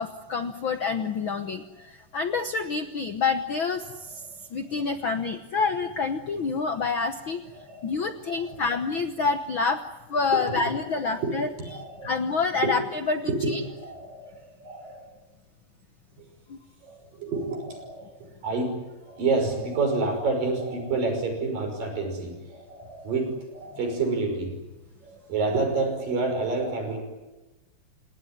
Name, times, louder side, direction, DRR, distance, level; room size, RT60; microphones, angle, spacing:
voice 1, 0.0-7.4 7.8-9.8 10.1-13.6 16.5-16.6, left 4 dB, 85° left, 8 dB, 1.1 m, -28 dB
voice 2, 7.5-7.9 8.3-8.6 10.9-11.3 11.6-12.1 12.6-12.7 13.4-15.1 16.2-16.3 16.8-18.1 18.4-24.6 25.0-27.0, right 3 dB, 75° right, 4 dB, 7.5 m, -29 dB
29.0 x 18.5 x 9.9 m, 1.1 s
omnidirectional pair, 4.0 m